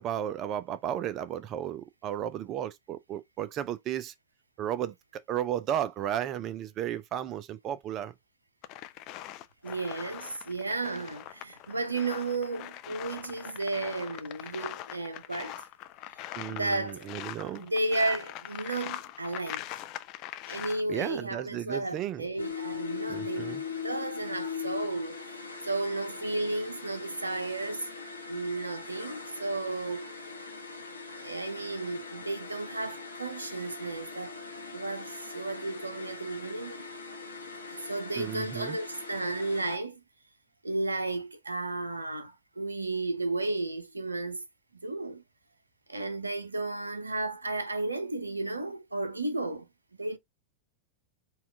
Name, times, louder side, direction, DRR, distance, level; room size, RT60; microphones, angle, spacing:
voice 1, 0.0-4.1 4.6-8.1 16.4-17.7 20.9-22.2 23.1-23.6 38.2-38.8, right 10 dB, 35° right, 0.5 m, -34 dB
sound 1, 8.6-20.8, left 14 dB, 40° left, 0.4 m, -42 dB
voice 2, 9.6-15.6 16.2-17.1 17.5-19.6 20.5-23.6 23.8-27.9 28.3-30.1 31.1-34.3 34.7-36.8 37.7-40.0 40.6-44.4 44.7-45.2 45.9-49.7 50.0-50.2, right 2 dB, 80° right, 0.6 m, -33 dB
sound 2, 22.4-39.8, left 5 dB, 80° left, 0.9 m, -41 dB
4.2 x 2.4 x 3.5 m
figure-of-eight pair, 90°, 0 cm